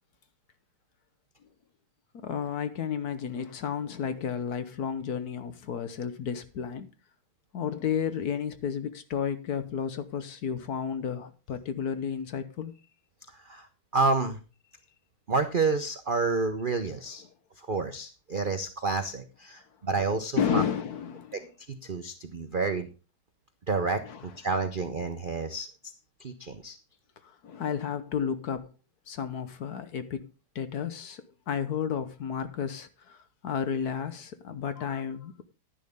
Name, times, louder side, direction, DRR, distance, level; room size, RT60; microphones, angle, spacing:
voice 1, 2.2-6.9 7.5-12.7 20.4-21.4 24.0-24.3 27.2-28.7 29.1-30.3 30.5-35.4, left 7 dB, 60° left, 1.2 m, -32 dB
voice 2, 13.9-14.4 15.3-17.2 17.6-20.6 21.3-21.4 21.7-22.9 23.7-25.7 26.2-26.8, right 3 dB, 85° right, 0.4 m, -29 dB
10.5 x 10.5 x 3.5 m
omnidirectional pair, 2.2 m